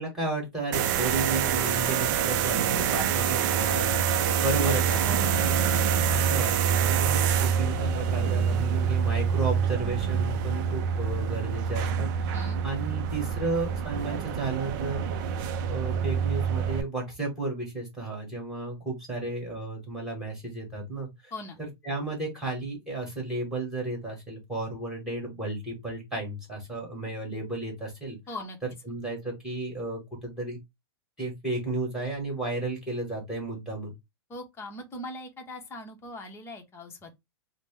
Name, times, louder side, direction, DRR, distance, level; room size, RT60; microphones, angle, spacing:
voice 1, 0.0-5.0 5.4-5.7 6.1-12.4 12.6-15.3 15.7-21.3 21.6-28.2 28.9-30.6 31.2-33.9, right 2 dB, 5° right, 2.5 m, -33 dB
sound 1, 0.7-16.8, right 7 dB, 50° right, 0.5 m, -26 dB
voice 2, 4.6-5.6 12.3-12.6 21.3-21.6 28.3-28.6 34.3-37.2, left 1 dB, 20° left, 1.0 m, -40 dB
5.1 x 2.1 x 3.4 m
hypercardioid pair, 135°, 14 cm